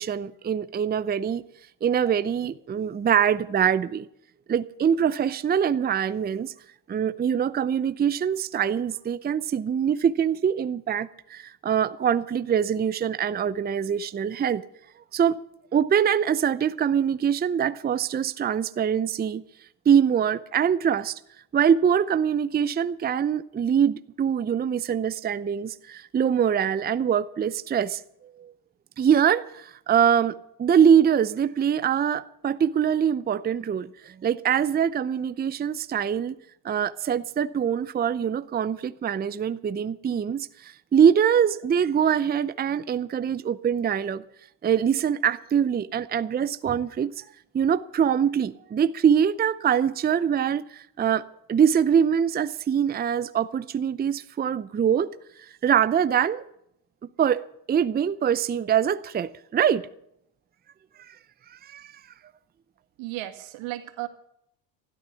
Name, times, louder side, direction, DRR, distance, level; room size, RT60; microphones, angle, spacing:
voice 1, 0.0-1.4 1.8-4.1 4.5-6.5 6.9-14.6 15.1-15.4 15.7-19.4 19.9-21.2 21.5-28.0 28.4-28.5 29.0-36.4 36.6-44.2 44.6-47.2 47.5-51.2 51.5-55.1 55.6-56.4 57.2-59.8 61.1-61.2 61.5-61.9, right 8 dB, 20° right, 0.6 m, -23 dB
voice 2, 63.0-64.1, right 17 dB, 85° right, 2.1 m, -34 dB
13.5 x 12.0 x 7.0 m
cardioid pair, 110°, 45 cm